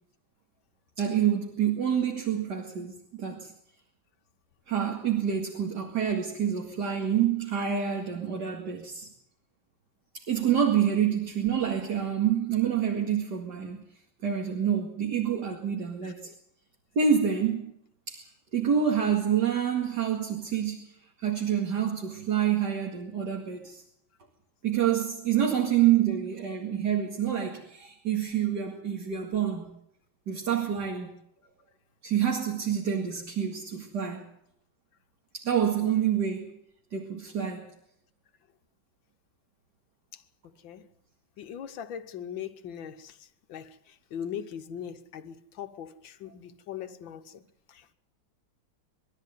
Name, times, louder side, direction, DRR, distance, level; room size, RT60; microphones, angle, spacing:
voice 1, 1.0-3.5 4.7-9.1 10.3-13.8 14.2-16.3 17.0-17.7 18.1-18.3 18.5-20.8 21.2-23.8 24.6-29.7 30.3-31.1 32.0-34.3 35.3-36.5 36.9-37.7, right 8 dB, 60° right, 2.7 m, -27 dB
voice 2, 16.0-16.3 40.1-40.9 41.4-47.4 47.7-47.9, left 8 dB, 75° left, 1.8 m, -41 dB
22.5 x 13.0 x 9.3 m
omnidirectional pair, 2.1 m